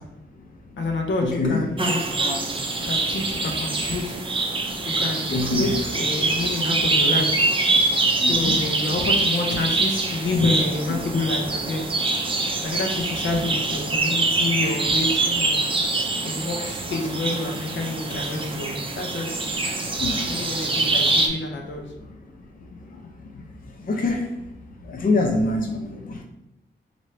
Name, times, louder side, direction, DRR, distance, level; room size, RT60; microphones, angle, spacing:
voice 1, 0.8-2.0 2.8-4.1 5.0-7.3 8.3-11.9 12.6-15.6 16.2-19.4 20.3-21.8, left 2 dB, 85° left, 2 dB, 0.7 m, -28 dB
sound 1, 1.8-21.3, right 2 dB, 30° right, 0.4 m, -24 dB
voice 2, 5.3-5.7 8.2-8.5 20.0-20.1 23.9-24.3 24.9-26.2, left 2 dB, 45° left, 2 dB, 0.5 m, -24 dB
4.2 x 2.6 x 3.2 m, 0.89 s
wide cardioid pair, 170°, 19 cm